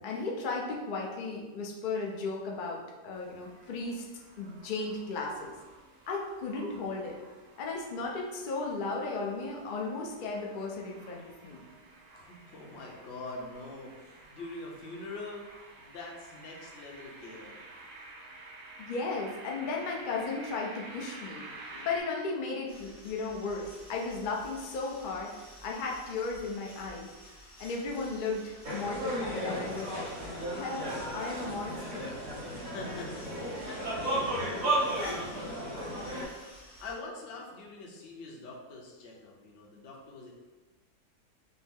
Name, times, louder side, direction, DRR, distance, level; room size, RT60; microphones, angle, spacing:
voice 1, 0.0-4.0 4.4-5.6 6.1-7.2 7.6-11.6 18.8-21.4 21.7-25.3 25.6-27.1 27.6-30.1 30.5-32.1, left 3 dB, 75° left, -1 dB, 0.4 m, -35 dB
sound 1, 3.1-22.0, right 2 dB, 80° right, 1.5 m, -51 dB
voice 2, 12.1-15.4 15.8-17.6 32.6-36.1 36.8-40.3, left 2 dB, 55° left, -1 dB, 0.9 m, -44 dB
sound 2, 22.7-37.0, equal, 25° right, 0.6 m, -52 dB
sound 3, 28.6-36.2, right 1 dB, 55° right, 1.8 m, -34 dB
5.9 x 2.0 x 3.6 m, 1.3 s
omnidirectional pair, 1.8 m